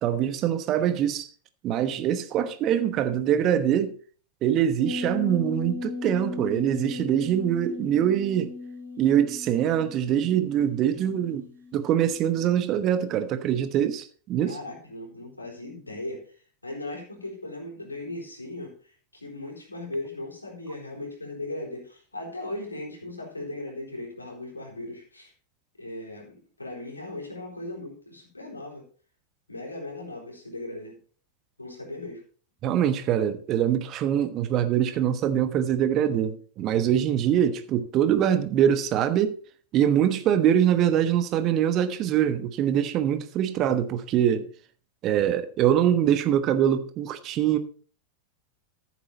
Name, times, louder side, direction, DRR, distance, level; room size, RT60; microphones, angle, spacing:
voice 1, 0.0-1.3 1.6-3.9 4.4-8.5 9.0-11.4 11.7-14.6 32.6-39.4 39.7-44.5 45.0-47.6, right 10 dB, 35° right, 1.1 m, -23 dB
sound 1, 4.8-13.1 13.4-13.5, left 3 dB, 80° right, 3.2 m, -37 dB
voice 2, 14.4-16.2 16.6-25.3 25.8-28.9 29.5-31.0 31.6-32.2, left 2 dB, 80° left, 4.0 m, -38 dB
14.0 x 7.4 x 4.1 m
figure-of-eight pair, 90°, 0 cm